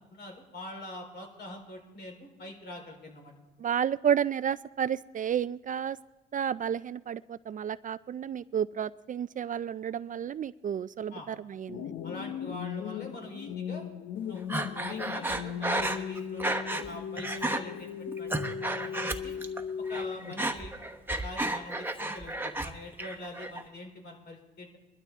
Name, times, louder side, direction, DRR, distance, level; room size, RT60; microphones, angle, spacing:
voice 1, 0.1-3.3 11.1-11.3 12.0-13.8 14.3-14.4 14.9-16.5 16.8-18.3 18.8-19.3 19.9-20.8 21.2-24.8, left 1 dB, 60° left, 2 dB, 4.1 m, -44 dB
voice 2, 3.6-6.0 6.3-11.9, right 8 dB, 40° right, 16 dB, 0.4 m, -31 dB
sound 1, 11.7-20.6, left 8 dB, 80° left, 0.9 m, -38 dB
Breathing, 14.5-16.9 17.2-17.6 18.1-19.6 19.9-22.7 23.0-23.6, right 2 dB, 10° right, 1.2 m, -32 dB
22.0 x 12.5 x 3.6 m, 1.2 s
cardioid pair, 90°, 20 cm